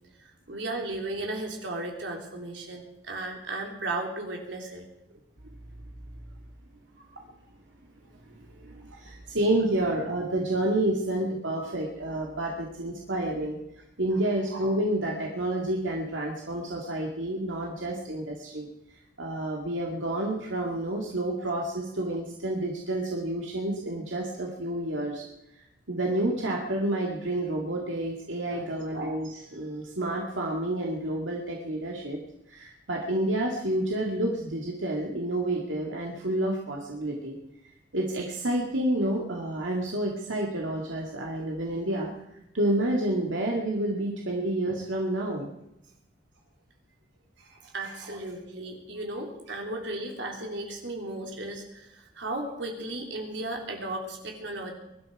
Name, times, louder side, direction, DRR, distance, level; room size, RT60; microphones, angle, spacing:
voice 1, 0.2-4.9 28.5-28.7 47.4-54.7, right 2 dB, 75° right, 1 dB, 3.6 m, -35 dB
voice 2, 8.3-13.6 14.0-25.3 25.5-32.2 32.5-37.4 37.9-45.5, right 1 dB, 90° right, -1 dB, 2.3 m, -29 dB
23.0 x 12.0 x 4.8 m, 0.89 s
head